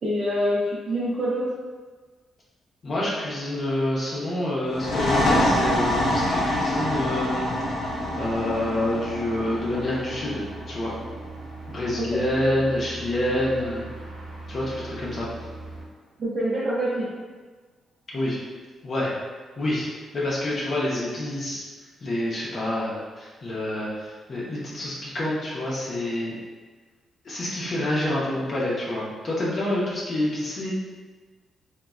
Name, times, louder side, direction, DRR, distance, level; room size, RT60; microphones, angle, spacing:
voice 1, 0.0-1.5 12.1-12.2 16.2-17.1, equal, 45° right, -9 dB, 0.6 m, -25 dB
voice 2, 2.8-7.5 8.1-11.0 11.7-13.9 14.5-15.3 18.1-18.4 18.8-19.1 19.6-19.9 20.1-21.6 22.0-26.3 27.2-30.7, left 1 dB, 45° left, -6 dB, 0.6 m, -27 dB
sound 1, 4.7-12.1, left 1 dB, 85° left, 0.6 m, -26 dB
sound 2, 7.8-15.8, right 2 dB, 90° right, 0.8 m, -40 dB
3.0 x 2.2 x 2.3 m, 1.4 s
cardioid pair, 90°, 0 cm